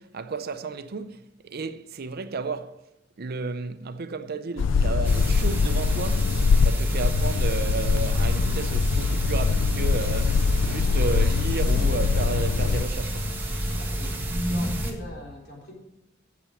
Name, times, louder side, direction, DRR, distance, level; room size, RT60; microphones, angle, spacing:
voice 1, 0.0-2.9 3.2-13.4, right 4 dB, 50° right, 0.6 m, -33 dB
sound 1, 4.6-12.9, left 5 dB, 70° left, 0.4 m, -23 dB
sound 2, 5.0-14.9, equal, 10° right, 1.8 m, -29 dB
voice 2, 13.7-15.7, left 1 dB, 55° left, 4.0 m, -42 dB
8.5 x 7.1 x 8.7 m
head